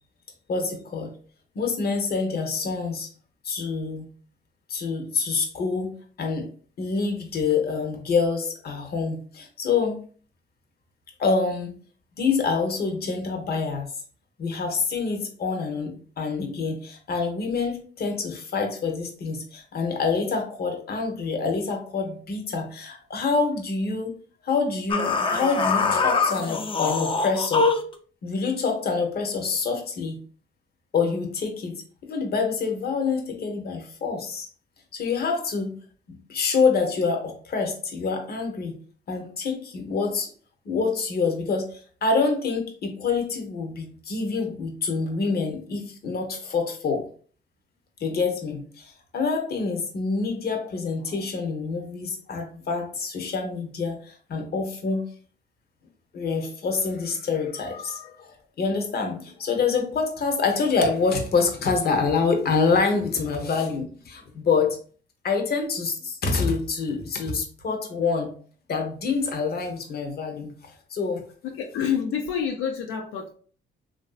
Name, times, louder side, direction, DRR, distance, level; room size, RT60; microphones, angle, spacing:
voice 1, 0.5-1.1 1.5-3.1 3.4-4.1 4.7-5.9 6.2-6.5 6.8-10.0 11.2-11.8 12.2-13.9 14.4-24.2 24.4-27.7 28.2-30.2 30.9-31.8 32.1-34.5 34.9-35.8 36.1-38.8 39.1-40.3 40.6-47.1 48.0-55.0 56.1-64.8 65.2-68.3 68.7-71.2, left 4 dB, 50° left, 0.8 m, -26 dB
sound 1, 24.9-28.0, left 4 dB, 25° left, 0.4 m, -23 dB
voice 2, 71.4-73.3, left 7 dB, 85° left, 0.5 m, -28 dB
3.1 x 2.6 x 2.3 m
cardioid pair, 90°, 20 cm